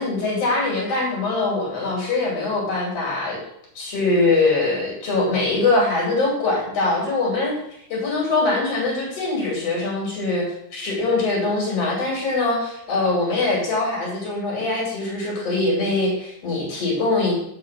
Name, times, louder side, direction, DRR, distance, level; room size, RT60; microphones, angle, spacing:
voice 1, 0.0-3.4 3.7-7.5 7.9-10.4 10.7-17.3, left 3 dB, 50° left, -3 dB, 3.4 m, -22 dB
7.4 x 5.0 x 5.7 m, 0.75 s
omnidirectional pair, 3.6 m